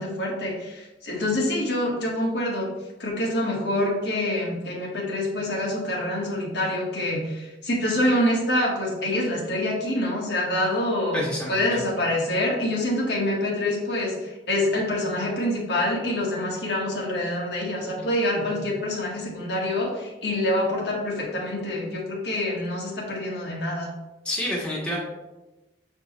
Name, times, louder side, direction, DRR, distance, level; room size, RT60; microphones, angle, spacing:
voice 1, 0.0-2.7 3.0-14.1 14.5-23.9, left 1 dB, 65° left, -3 dB, 1.5 m, -26 dB
voice 2, 11.1-11.8 18.6-18.7 24.3-25.0, equal, 5° left, -5 dB, 1.8 m, -29 dB
7.3 x 4.6 x 3.1 m, 1.1 s
head